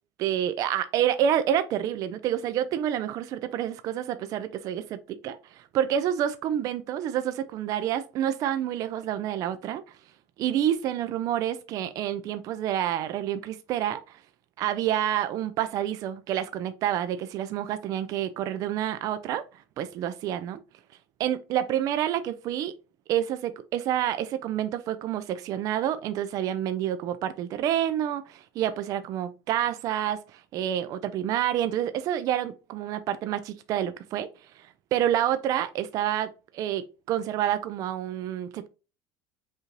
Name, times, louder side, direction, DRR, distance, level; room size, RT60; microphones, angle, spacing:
voice 1, 0.2-9.8 10.4-14.2 14.6-19.4 19.8-20.6 21.2-22.7 23.1-34.3 34.9-38.7, right 10 dB, 40° right, 0.4 m, -28 dB
5.4 x 2.5 x 3.1 m
cardioid pair, 155°, 9 cm